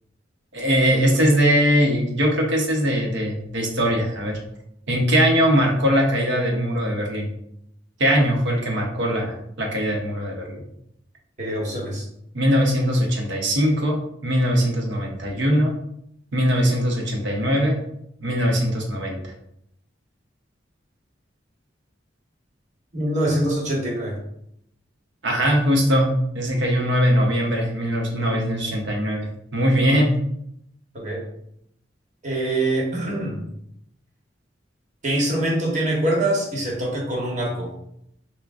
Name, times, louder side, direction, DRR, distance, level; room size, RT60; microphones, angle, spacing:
voice 1, 0.5-4.4 4.9-7.3 8.0-10.6 12.3-15.7 16.3-17.8 18.2-19.3 25.2-26.1 26.3-30.2, equal, 75° right, 0 dB, 0.8 m, -21 dB
voice 2, 11.4-12.1 22.9-24.2 30.9-31.2 32.2-33.4 35.0-37.7, right 1 dB, 40° right, -2 dB, 1.1 m, -24 dB
5.8 x 2.1 x 2.4 m, 0.76 s
head